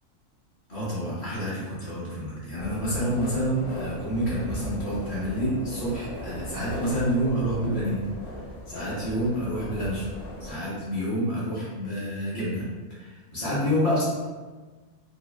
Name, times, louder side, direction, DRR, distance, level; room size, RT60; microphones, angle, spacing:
voice 1, 0.7-8.0 8.7-10.1 10.4-12.6 13.0-14.0, equal, 35° left, -10 dB, 1.0 m, -28 dB
sound 1, 2.6-10.5, equal, 60° left, 0.6 m, -37 dB
3.1 x 2.3 x 2.3 m, 1.3 s
omnidirectional pair, 1.4 m